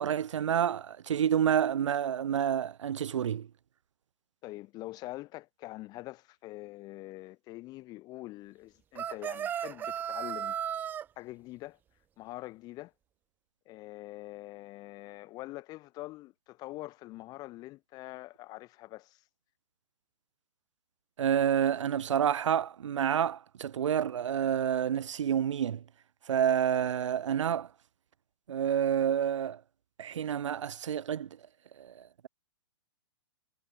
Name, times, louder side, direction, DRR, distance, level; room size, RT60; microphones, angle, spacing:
voice 1, 0.0-3.5 21.2-25.8 26.3-27.7 28.5-29.6 30.0-31.3 31.8-32.3, right 9 dB, 75° right, 1.1 m, -29 dB
voice 2, 4.4-10.6 11.2-11.8 12.2-12.9 13.6-19.2, left 18 dB, 25° left, 3.4 m, -44 dB
sound 1, 8.9-11.0, right 9 dB, 10° right, 0.6 m, -35 dB
hypercardioid pair, 155°, 16 cm